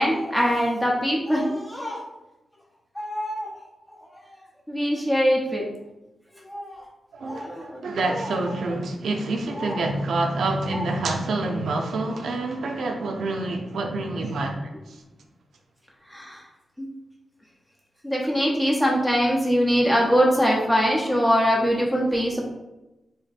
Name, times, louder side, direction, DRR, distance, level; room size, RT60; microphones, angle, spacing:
voice 1, 0.0-2.0 2.9-3.5 4.7-5.6 6.5-6.9 7.2-8.3 9.5-9.8 10.7-10.8 16.1-16.4 16.8-16.9 18.0-22.4, equal, 10° left, -2 dB, 0.8 m, -23 dB
voice 2, 7.1-15.0, right 2 dB, 90° right, 2 dB, 0.5 m, -27 dB
3.5 x 2.1 x 4.1 m, 0.99 s
wide cardioid pair, 135°, 0 cm